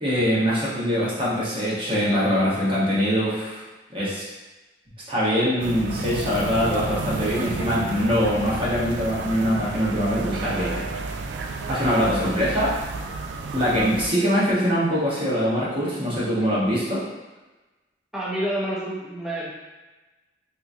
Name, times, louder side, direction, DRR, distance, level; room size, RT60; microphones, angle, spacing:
voice 1, 0.0-3.6 3.9-4.2 5.1-10.8 11.7-12.7 13.5-17.0, equal, 30° right, -8 dB, 1.1 m, -23 dB
sound 1, 5.6-14.1, right 3 dB, 70° right, 0.3 m, -32 dB
voice 2, 18.1-19.5, right 1 dB, ahead, -7 dB, 0.6 m, -28 dB
3.5 x 2.9 x 2.6 m, 1.2 s
head